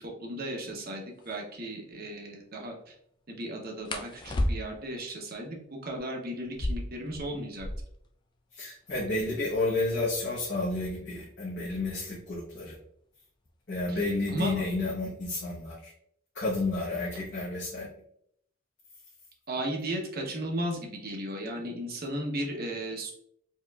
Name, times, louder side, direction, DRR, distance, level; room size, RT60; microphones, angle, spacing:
voice 1, 0.0-2.9 3.3-7.7 13.9-14.0 14.3-14.5 19.5-23.1, right 1 dB, 45° right, 1 dB, 0.8 m, -35 dB
sound 1, 1.2-1.4 3.8-5.0 6.4-8.1 8.4-8.5 8.7-9.3 9.9-12.4 13.5-13.8 14.2-14.6 15.0-15.7, left 1 dB, 20° left, 0.3 m, -34 dB
voice 2, 8.5-12.8 13.7-15.9 16.3-17.9, left 2 dB, 55° left, -8 dB, 1.0 m, -31 dB
4.5 x 2.9 x 2.3 m, 0.70 s
head